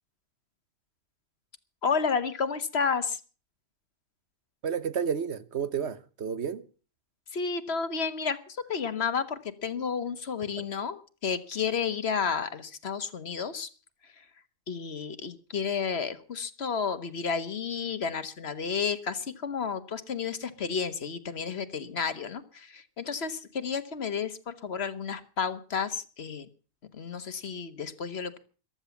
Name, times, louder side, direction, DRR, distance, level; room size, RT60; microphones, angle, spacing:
voice 1, 1.8-3.2 7.3-13.7 14.0-14.3 14.7-26.5 26.9-28.4, left 6 dB, 50° left, 1.5 m, -31 dB
voice 2, 4.6-6.6, right 7 dB, 55° right, 1.3 m, -31 dB
14.5 x 12.5 x 7.1 m
omnidirectional pair, 1.4 m